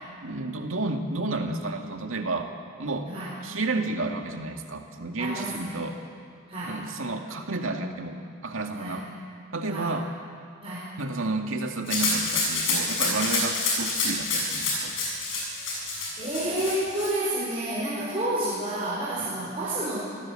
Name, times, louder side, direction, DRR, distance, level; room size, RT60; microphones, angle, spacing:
voice 1, 0.2-2.5 2.8-3.1 3.4-6.0 6.6-9.1 9.5-10.1 11.0-15.0 19.2-19.3, right 2 dB, 80° right, 4 dB, 2.0 m, -31 dB
voice 2, 5.2-5.7 6.5-6.8 8.7-9.0 9.7-9.9 10.6-10.9 13.0-13.2 16.2-20.0, right 1 dB, 30° right, -8 dB, 4.9 m, -30 dB
Rattle (instrument), 11.9-17.1, left 3 dB, 70° left, 6.8 m, -27 dB
26.5 x 15.5 x 7.7 m, 2.2 s
head